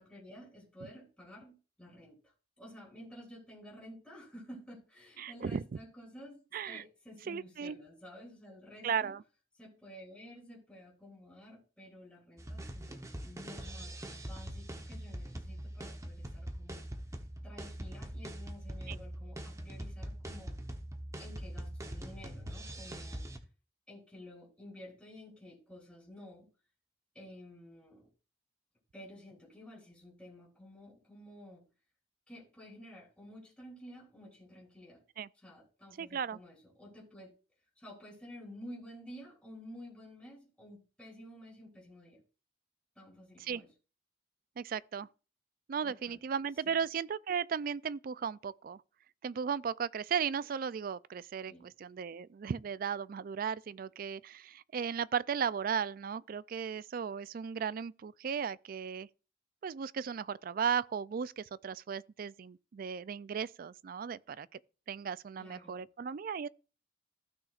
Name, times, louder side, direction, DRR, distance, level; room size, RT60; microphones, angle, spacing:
voice 1, 0.0-9.1 9.6-13.0 13.2-16.8 17.4-20.6 21.2-23.3 23.9-26.4 27.1-28.1 28.9-31.6 32.3-35.0 35.3-37.3 37.8-42.2 43.0-43.7 45.8-46.2 46.6-46.8 51.4-51.7 65.4-65.8, equal, 5° left, 3.4 m, -52 dB
voice 2, 5.2-5.6 6.5-6.8 7.3-7.8 8.8-9.2 18.9-19.0 35.2-35.3 36.0-36.4 43.4-43.6 44.6-45.1 45.7-48.8 49.2-59.1 59.6-64.5 64.9-66.5, right 7 dB, 50° right, 0.3 m, -36 dB
sound 1, 12.4-23.4, right 1 dB, 15° right, 0.9 m, -43 dB
15.5 x 6.3 x 2.4 m
head